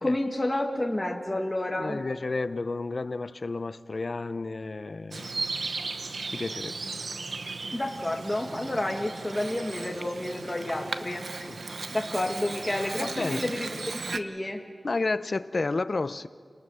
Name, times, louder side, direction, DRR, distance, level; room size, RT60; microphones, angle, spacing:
voice 1, 0.0-2.0 7.7-11.5 11.9-13.7 14.1-14.6, left 1 dB, 20° left, 1.8 m, -30 dB
voice 2, 1.7-5.3 6.3-6.8 11.5-11.6 13.0-13.4 14.8-16.3, left 3 dB, 55° left, 0.6 m, -31 dB
Bird vocalization bird call bird song, 5.1-14.2, right 3 dB, 75° right, 0.9 m, -36 dB
29.5 x 19.0 x 6.4 m
wide cardioid pair, 80°, 0 cm